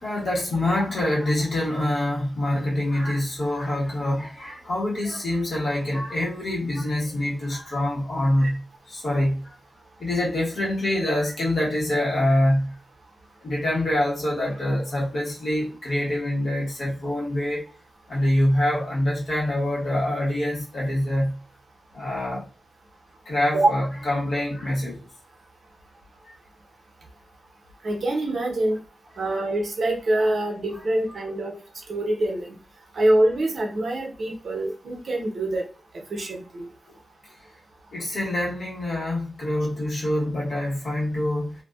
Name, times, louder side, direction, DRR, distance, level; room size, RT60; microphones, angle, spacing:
voice 1, 0.0-9.6 10.0-12.8 13.4-17.7 18.1-21.4 21.9-22.5 23.2-25.1 26.2-26.3 30.2-30.3 37.9-41.5, left 1 dB, 55° left, 1.4 m, -25 dB
voice 2, 27.8-28.8 29.2-31.6 31.9-32.5 32.9-35.6 36.1-36.7, right 1 dB, 60° right, 0.8 m, -24 dB
2.6 x 2.3 x 2.3 m
wide cardioid pair, 150°, 0 cm